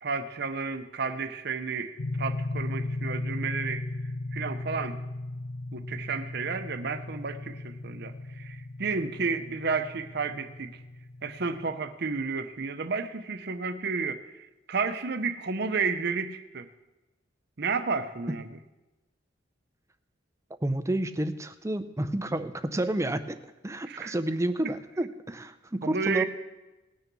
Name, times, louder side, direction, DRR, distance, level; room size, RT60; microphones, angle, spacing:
voice 1, 0.0-3.9 4.3-5.0 5.7-10.8 11.2-16.7 17.6-18.5 23.9-24.1 25.8-26.2, right 4 dB, 55° right, 10 dB, 0.8 m, -32 dB
sound 1, 2.0-11.7, left 2 dB, 60° left, 0.6 m, -36 dB
voice 2, 20.6-23.4 23.6-26.2, right 1 dB, 15° right, 10 dB, 0.6 m, -30 dB
18.5 x 6.8 x 6.1 m, 1.1 s
head